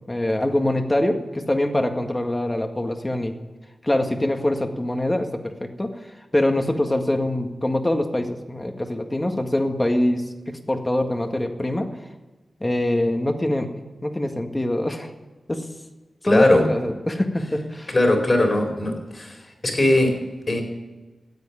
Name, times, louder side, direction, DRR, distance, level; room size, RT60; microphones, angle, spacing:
voice 1, 0.1-3.4 3.8-5.9 6.3-11.9 12.6-13.7 14.0-15.1 15.5-15.6 16.3-17.9, left 1 dB, 20° left, 5 dB, 1.8 m, -24 dB
voice 2, 16.2-16.7 17.9-19.4 19.6-20.6, left 1 dB, 40° left, 2 dB, 4.3 m, -19 dB
13.5 x 8.4 x 9.8 m, 1.2 s
cardioid pair, 50°, 0 cm